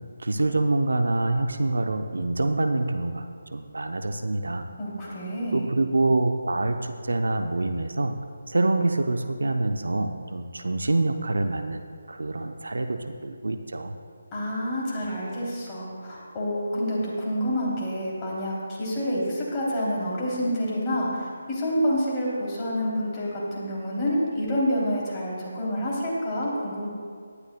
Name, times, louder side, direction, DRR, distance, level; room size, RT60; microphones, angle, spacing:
voice 1, 0.2-4.7 5.5-8.1 8.5-11.8 12.1-13.9, right 2 dB, 80° right, 7 dB, 0.7 m, -26 dB
voice 2, 4.8-5.6 14.3-26.9, equal, 20° left, -6 dB, 3.0 m, -28 dB
18.0 x 11.5 x 2.2 m, 2.1 s
figure-of-eight pair, 155°, 0 cm